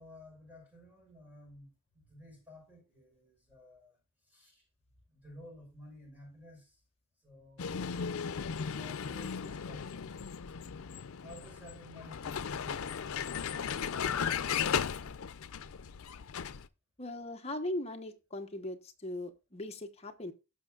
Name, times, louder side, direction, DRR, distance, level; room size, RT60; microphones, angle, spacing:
voice 1, 0.0-1.7 2.1-3.9 4.3-4.5 5.1-6.7 7.2-8.0 8.7-10.1 11.2-14.0, left 1 dB, 10° right, 5.9 m, -53 dB
Vehicle, 7.6-16.7, left 7 dB, 85° left, 0.5 m, -36 dB
voice 2, 17.0-20.3, left 1 dB, 30° left, 1.1 m, -39 dB
16.0 x 6.3 x 2.4 m
head